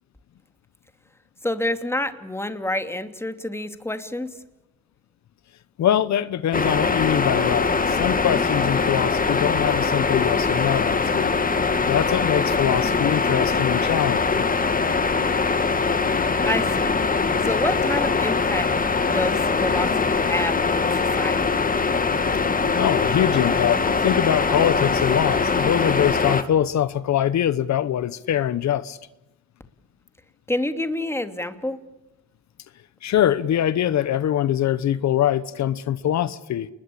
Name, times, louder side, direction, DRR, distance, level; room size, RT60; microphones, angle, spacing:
voice 1, 1.4-4.3 16.4-17.0 17.4-18.7 19.1-20.8 21.2-21.6 30.5-31.8, left 1 dB, 10° left, 2.8 m, -28 dB
voice 2, 5.8-11.3 11.9-14.5 22.7-29.0 33.0-36.7, left 11 dB, 65° left, 1.1 m, -23 dB
sound 1, 6.5-26.4, left 4 dB, 30° left, 2.5 m, -22 dB
29.0 x 21.5 x 8.7 m
cardioid pair, 90°, 30 cm